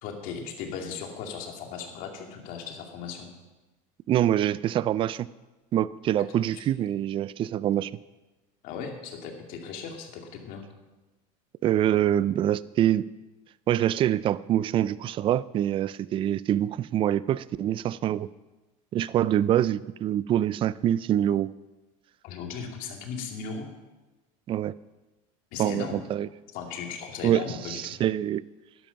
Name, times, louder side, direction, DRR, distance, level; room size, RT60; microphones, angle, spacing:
voice 1, 0.0-3.3 6.5-6.6 8.6-10.7 22.2-23.7 25.5-26.0 26.5-28.0, left 6 dB, 60° left, 3 dB, 2.5 m, -37 dB
voice 2, 4.1-5.3 5.7-7.9 11.6-13.0 13.7-18.3 18.9-21.5 24.5-24.7 25.6-26.3 27.2-28.4, right 11 dB, 30° right, 18 dB, 0.4 m, -25 dB
12.5 x 11.0 x 5.8 m, 1.1 s
supercardioid pair, 125°, 17 cm